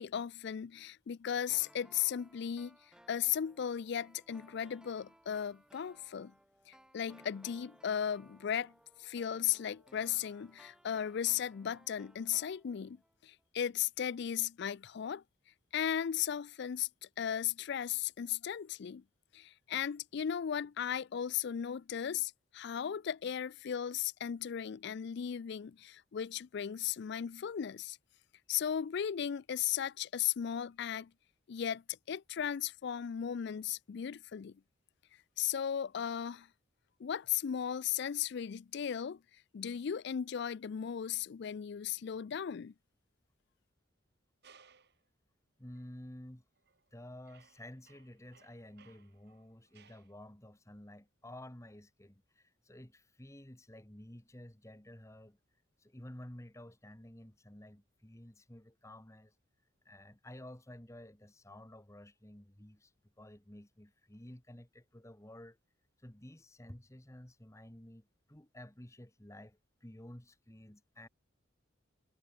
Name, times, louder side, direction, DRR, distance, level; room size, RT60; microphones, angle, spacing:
voice 1, 0.0-2.8 3.1-6.3 6.7-8.7 9.0-13.0 13.2-15.2 15.7-16.9 17.2-19.0 19.3-28.0 28.5-31.1 31.5-34.6 35.4-36.5 37.0-39.2 39.5-42.7, left 9 dB, 55° left, 0.4 m, -36 dB
sound 1, 1.5-13.1 13.4-13.5, equal, 5° right, 4.0 m, -62 dB
sound 2, 44.4-45.0 45.7-45.9 46.6-46.9 47.2-50.1, right 6 dB, 55° right, 2.9 m, -64 dB
voice 2, 45.6-46.4 46.9-55.4 55.8-59.3 59.8-62.9 63.2-65.6 66.0-71.1, left 1 dB, 15° left, 1.5 m, -52 dB
head